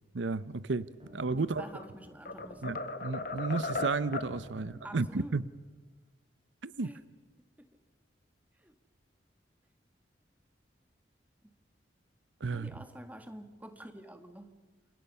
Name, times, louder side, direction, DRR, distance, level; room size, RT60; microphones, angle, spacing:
voice 1, 0.1-0.9 1.1-1.6 2.6-5.4 6.6-6.9 12.4-12.7, right 4 dB, 90° right, 0.7 m, -32 dB
sound 1, 1.0-4.8, equal, 30° right, 3.7 m, -53 dB
sound 2, 1.4-1.9 2.3-4.4, left 3 dB, 50° left, 1.5 m, -37 dB
voice 2, 1.4-2.8 4.8-5.3 6.8-7.0 7.6-7.7 8.6-8.7 11.4-11.5 12.5-14.6, right 1 dB, 10° right, 1.7 m, -48 dB
29.0 x 27.5 x 5.6 m
head